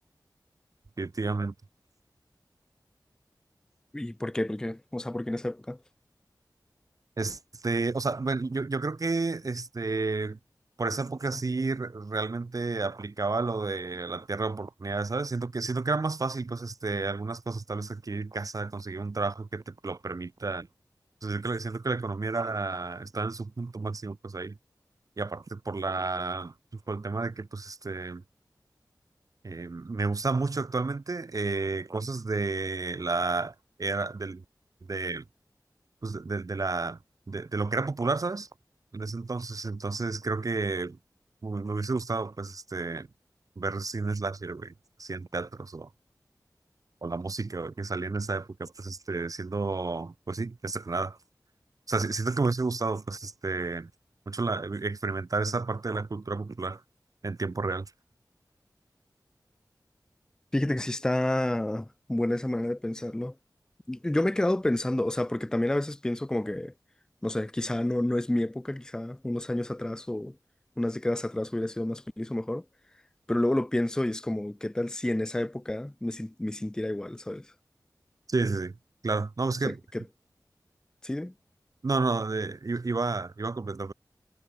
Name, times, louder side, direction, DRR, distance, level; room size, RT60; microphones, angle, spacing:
voice 1, 1.0-1.5 7.2-10.4 10.8-20.7 21.2-24.6 25.2-26.5 26.9-28.2 29.4-34.4 34.9-35.2 36.0-37.0 37.3-38.5 38.9-41.0 41.4-43.1 43.6-44.7 45.0-45.9 47.0-51.2 51.9-53.9 54.3-56.8 57.2-57.9 78.3-78.7 79.0-79.8 81.8-83.9, right 3 dB, 55° right, 0.9 m, -31 dB
voice 2, 3.9-5.8 60.5-63.4 63.9-66.7 67.2-70.4 70.8-72.6 73.3-77.5 79.6-80.0 81.0-81.3, left 1 dB, 10° left, 0.4 m, -29 dB
wide cardioid pair, 70°, 7 cm